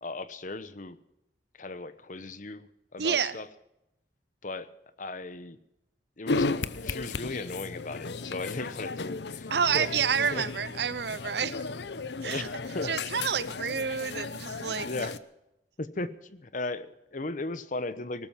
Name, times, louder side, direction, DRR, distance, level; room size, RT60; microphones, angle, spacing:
voice 1, 0.0-1.0 1.6-2.7 2.9-3.5 4.4-4.7 5.0-5.6 6.2-6.5 6.8-9.9 10.3-10.5 12.2-12.5 12.7-13.1 14.8-15.2 15.8-18.3, left 2 dB, 45° left, 14 dB, 1.0 m, -36 dB
voice 2, 3.0-3.4 9.5-11.6 12.2-12.5 12.8-15.1, right 7 dB, 70° right, 17 dB, 0.8 m, -29 dB
sound 1, 6.3-15.2, left 3 dB, 75° left, 0.8 m, -35 dB
19.0 x 13.0 x 5.8 m, 0.86 s
head